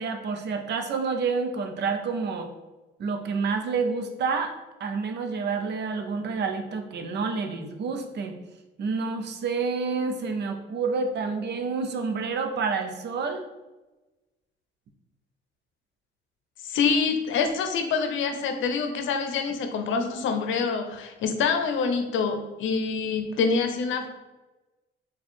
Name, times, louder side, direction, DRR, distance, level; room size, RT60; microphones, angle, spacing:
voice 1, 0.0-2.5 3.0-4.5 4.8-8.4 8.8-13.5, right 4 dB, 60° right, 6 dB, 0.6 m, -28 dB
voice 2, 16.6-24.1, left 5 dB, 80° left, 6 dB, 0.6 m, -26 dB
4.2 x 2.3 x 4.3 m, 1.1 s
cardioid pair, 90°, 20 cm